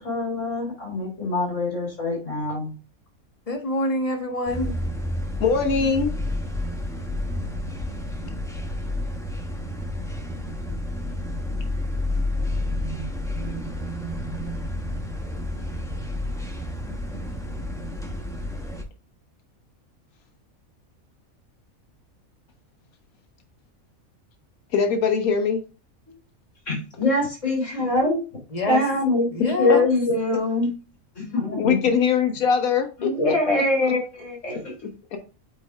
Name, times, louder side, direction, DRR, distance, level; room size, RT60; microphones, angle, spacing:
voice 1, 0.0-2.7 13.4-13.9 26.7-28.2 28.6-30.7 31.2-31.8 33.0-34.7, left 2 dB, 60° left, 3.5 m, -24 dB
voice 2, 3.5-4.8 28.5-28.8 29.3-29.9, left 1 dB, 25° left, 1.3 m, -26 dB
sound 1, 4.5-18.8, left 1 dB, 5° left, 0.7 m, -30 dB
voice 3, 5.4-6.1 24.7-25.6 26.1-26.2 29.7-29.8 31.5-33.1 34.8-35.2, left 6 dB, 85° left, 1.4 m, -22 dB
8.6 x 4.5 x 2.4 m
omnidirectional pair, 1.5 m